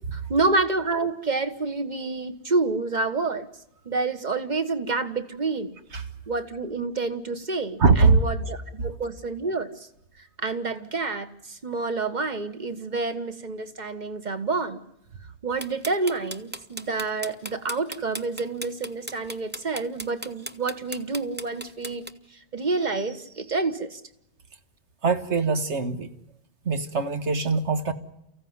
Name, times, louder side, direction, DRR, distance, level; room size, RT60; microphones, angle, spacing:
voice 1, 0.1-3.5 3.8-5.7 6.3-9.9 10.2-14.8 15.4-24.0, right 3 dB, 40° right, 10 dB, 1.5 m, -28 dB
voice 2, 7.8-8.2 25.0-26.1 26.7-27.9, right 4 dB, 90° right, 8 dB, 1.9 m, -21 dB
sound 1, 15.6-22.1, right 1 dB, 10° right, 0.9 m, -36 dB
29.5 x 15.5 x 9.6 m, 0.82 s
omnidirectional pair, 1.1 m